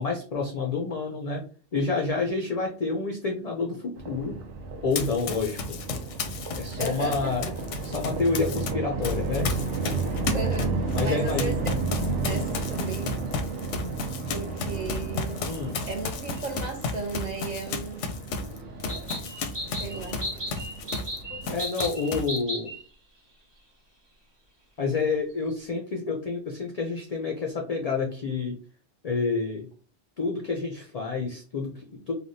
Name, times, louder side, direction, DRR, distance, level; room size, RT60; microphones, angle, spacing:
voice 1, 0.0-1.4 1.7-4.4 4.8-5.8 6.6-7.5 7.8-9.5 10.9-11.6 12.2-12.5 15.4-15.8 19.2-19.3 21.3-22.7 24.8-28.6 29.0-29.7 30.2-32.1, left 4 dB, 60° left, 1 dB, 0.4 m, -29 dB
sound 1, 4.0-21.6, right 3 dB, 80° right, 0.9 m, -33 dB
Run, 4.9-8.7 9.0-21.2 21.4-22.4, left 4 dB, 90° left, 0.9 m, -33 dB
voice 2, 6.8-7.5 10.3-10.7 11.0-11.6 12.2-13.1 14.3-15.4 15.8-18.0 19.7-20.2, right 3 dB, 50° right, 2 dB, 0.5 m, -34 dB
sound 2, 16.3-16.4 18.9-22.8, equal, 25° right, 1.0 m, -35 dB
3.4 x 2.2 x 2.6 m, 0.39 s
omnidirectional pair, 1.2 m